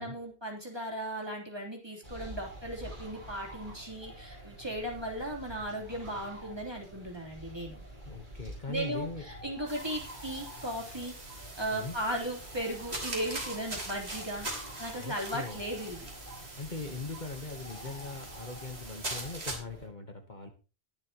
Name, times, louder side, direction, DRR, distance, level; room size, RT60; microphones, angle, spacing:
voice 1, 0.0-7.8 8.7-11.2 11.6-14.5 14.8-16.1, right 1 dB, 25° right, -1 dB, 3.7 m, -37 dB
sound 1, 2.0-19.9, right 1 dB, 55° right, 5.7 m, -48 dB
voice 2, 8.0-9.2 11.7-12.0 15.0-15.6 16.6-20.5, left 3 dB, 45° left, 5 dB, 1.6 m, -40 dB
sound 2, 9.7-19.6, right 2 dB, 85° right, 3.3 m, -42 dB
21.0 x 7.3 x 3.0 m, 0.32 s
omnidirectional pair, 1.1 m